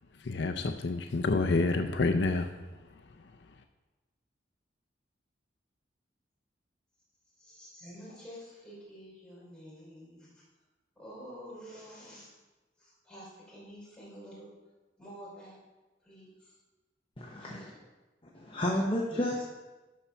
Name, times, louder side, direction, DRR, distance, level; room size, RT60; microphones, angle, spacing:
voice 1, 0.2-2.5, left 3 dB, 70° left, 6 dB, 0.5 m, -28 dB
voice 2, 7.4-10.3 11.0-12.3 12.8-14.5 15.0-15.6 16.0-16.5 17.4-17.7 19.1-19.2, equal, 5° left, -6 dB, 3.5 m, -49 dB
voice 3, 17.2-17.7 18.3-19.4, left 1 dB, 30° left, -3 dB, 1.0 m, -31 dB
12.5 x 4.3 x 5.9 m, 1.2 s
head